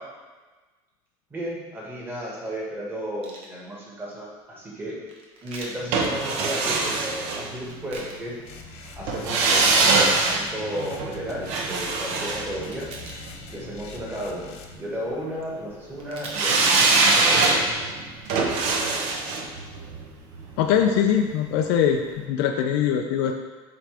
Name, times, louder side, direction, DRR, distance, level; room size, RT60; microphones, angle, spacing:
voice 1, 1.3-5.0 5.4-8.4 9.0-12.9 13.5-16.8 17.1-17.6, equal, 20° right, -5 dB, 1.8 m, -34 dB
sound 1, 3.2-3.5 5.1-5.8 7.5-8.2 8.8-9.1 9.9-10.7 12.7-13.6 15.7-15.8 16.0-16.7 17.3-17.4, right 2 dB, 50° right, 1.2 m, -41 dB
sound 2, 5.9-8.0 9.1-13.3 16.3-21.3 21.6-21.7, right 3 dB, 70° right, 0.9 m, -23 dB
sound 3, 8.4-14.7, left 4 dB, 60° left, 0.8 m, -44 dB
voice 2, 20.6-23.3, left 8 dB, 85° left, 3 dB, 0.5 m, -22 dB
7.6 x 3.6 x 3.4 m, 1.3 s
cardioid pair, 135°, 12 cm